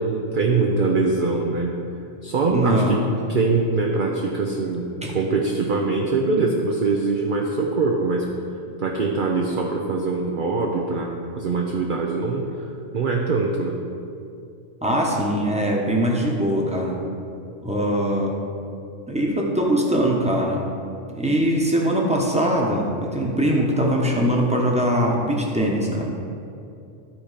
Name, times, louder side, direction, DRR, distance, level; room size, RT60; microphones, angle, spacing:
voice 1, 0.0-1.8 2.2-3.0 3.3-8.3 8.8-11.1 11.4-12.7 12.9-13.8, right 3 dB, 50° right, -1 dB, 0.8 m, -23 dB
voice 2, 2.5-3.0 5.0-5.1 14.8-17.0 17.6-18.3 19.1-20.6 21.2-26.1, equal, 5° right, -2 dB, 1.0 m, -21 dB
12.5 x 4.3 x 5.0 m, 2.6 s
omnidirectional pair, 1.3 m